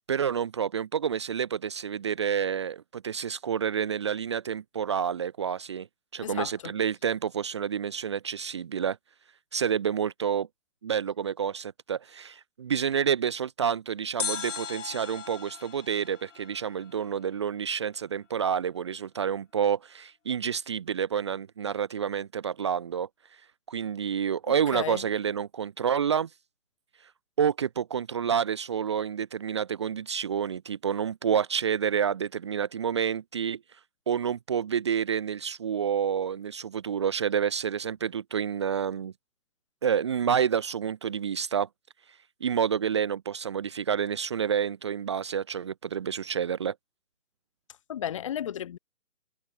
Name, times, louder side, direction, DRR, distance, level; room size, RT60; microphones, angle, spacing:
voice 1, 0.1-5.9 6.1-9.0 9.5-10.5 10.8-23.1 23.7-26.3 27.0-27.1 27.4-33.6 34.1-39.1 39.8-41.7 42.4-46.7, right 8 dB, 20° right, 1.5 m, -29 dB
voice 2, 6.2-6.7 24.5-25.1 47.9-48.8, left 10 dB, 25° left, 2.9 m, -34 dB
sound 1, 14.2-17.3 17.5-17.6, left 6 dB, 65° left, 1.4 m, -37 dB
hypercardioid pair, 175°, 41 cm